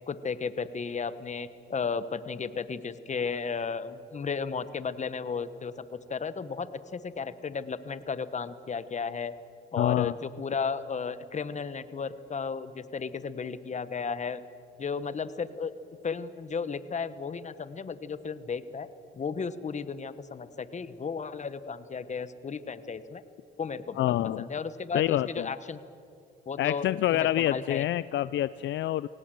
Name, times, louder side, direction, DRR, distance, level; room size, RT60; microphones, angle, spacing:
voice 1, 0.1-9.3 9.7-14.4 14.8-15.7 16.0-18.9 19.1-23.2 23.6-24.0 24.4-25.8 26.5-26.8 27.1-27.9, left 5 dB, 35° left, 14 dB, 1.1 m, -34 dB
voice 2, 9.8-10.1 24.0-24.4 24.9-25.5 26.6-29.1, left 13 dB, 70° left, 16 dB, 0.4 m, -27 dB
24.0 x 18.0 x 7.7 m, 2.6 s
cardioid pair, 90°, 20 cm